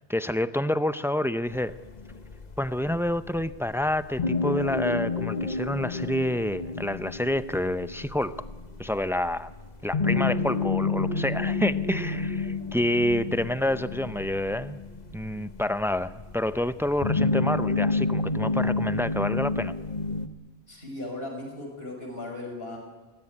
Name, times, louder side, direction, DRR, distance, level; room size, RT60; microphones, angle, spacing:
voice 1, 0.1-1.8 2.6-8.4 8.8-9.5 9.8-14.8 15.1-19.7, left 1 dB, 5° right, 13 dB, 0.3 m, -28 dB
sound 1, 1.5-20.3, left 3 dB, 40° left, 1.3 m, -30 dB
voice 2, 20.7-22.8, left 2 dB, 60° left, 2 dB, 6.4 m, -37 dB
21.5 x 18.5 x 9.9 m, 1.3 s
omnidirectional pair, 1.2 m